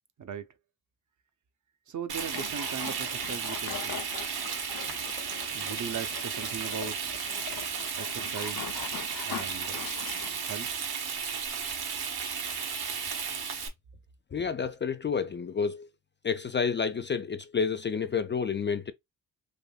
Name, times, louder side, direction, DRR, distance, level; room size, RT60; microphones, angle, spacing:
voice 1, 1.9-4.5 5.5-7.1 8.0-8.8 9.2-9.8 10.4-10.7, right 7 dB, 45° right, 0.7 m, -39 dB
sound 1, 2.1-10.7, left 9 dB, 55° left, 0.7 m, -42 dB
Frying (food), 2.1-13.7, right 6 dB, 65° right, 1.2 m, -34 dB
voice 2, 14.3-15.9 16.2-18.9, left 6 dB, 30° left, 0.4 m, -29 dB
3.6 x 2.6 x 2.3 m
supercardioid pair, 60°, 40 cm